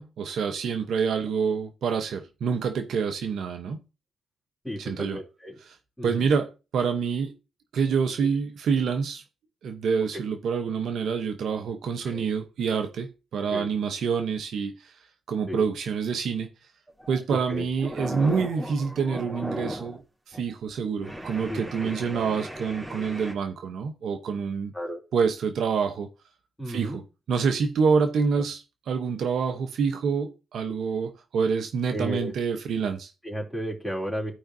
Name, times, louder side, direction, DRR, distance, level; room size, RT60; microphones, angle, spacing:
voice 1, 0.0-3.8 4.8-5.2 5.7-5.8 6.0-7.4 7.7-9.2 9.6-14.9 15.3-16.5 17.1-20.0 20.3-24.7 25.1-26.1 26.7-27.0 27.3-33.1, right 6 dB, 70° right, 0.8 m, -27 dB
voice 2, 4.6-5.6 6.0-6.3 12.0-12.2 13.5-13.7 15.5-15.6 17.5-17.6 21.5-22.2 24.7-25.0 26.6-27.0 31.9-32.3 33.2-34.3, equal, 5° left, 3.2 m, -33 dB
sound 1, 16.9-17.2 17.5-20.0 20.3-20.5 21.0-23.3, equal, 15° right, 3.2 m, -36 dB
14.5 x 5.0 x 2.7 m
supercardioid pair, 50°, 0 cm